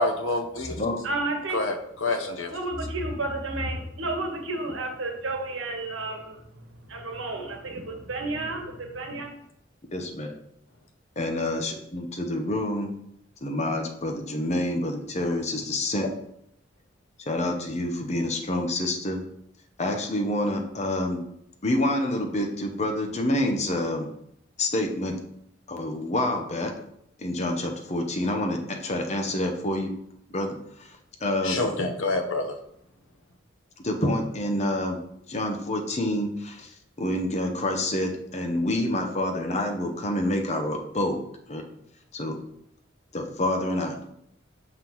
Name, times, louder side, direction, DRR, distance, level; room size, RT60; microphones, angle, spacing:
voice 1, 0.0-0.8 1.5-1.7 2.0-2.5 31.4-32.5, left 2 dB, 90° left, 5 dB, 0.9 m, -27 dB
voice 2, 1.0-1.6 2.5-9.3, right 2 dB, 85° right, 3 dB, 1.3 m, -31 dB
voice 3, 9.9-10.3 11.2-12.9 13.4-16.1 17.3-19.2 19.8-21.2 21.6-24.1 24.6-25.2 25.7-26.7 27.2-29.9 30.3-30.9 31.2-31.6 33.8-35.0 35.3-41.2 41.5-41.6 42.1-42.4 43.1-44.1, left 1 dB, 35° left, 3 dB, 0.8 m, -27 dB
5.8 x 5.7 x 3.0 m, 0.74 s
head